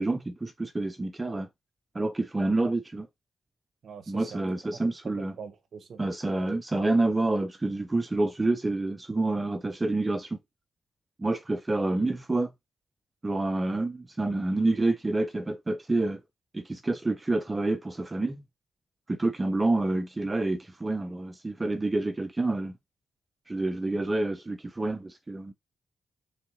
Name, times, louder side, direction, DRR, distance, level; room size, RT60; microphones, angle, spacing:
voice 1, 0.0-1.5 1.9-3.1 4.1-5.4 6.0-10.4 11.2-12.5 13.2-16.2 16.5-18.4 19.1-22.7 23.5-25.5, right 2 dB, 25° right, 0.5 m, -28 dB
voice 2, 3.8-4.4 4.7-4.8 5.0-6.0, right 6 dB, 65° right, 0.8 m, -43 dB
4.1 x 3.6 x 2.8 m
cardioid pair, 60°, 0 cm